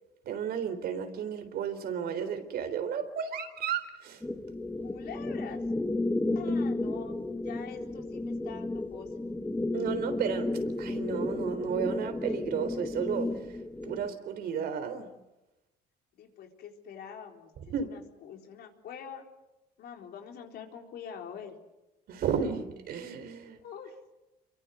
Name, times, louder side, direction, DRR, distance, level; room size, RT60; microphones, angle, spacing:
voice 1, 0.3-4.2 9.7-10.5 10.8-13.6 13.8-15.1 17.7-17.9 22.1-23.6, right 7 dB, 65° right, 9 dB, 3.8 m, -33 dB
sound 1, 4.2-14.1, left 2 dB, 10° left, 2.0 m, -33 dB
voice 2, 4.8-5.6 6.3-9.1 16.1-19.2 19.8-21.6 23.6-24.1, left 7 dB, 70° left, 3 dB, 4.1 m, -45 dB
27.5 x 23.5 x 8.0 m, 0.98 s
cardioid pair, 110°, 17 cm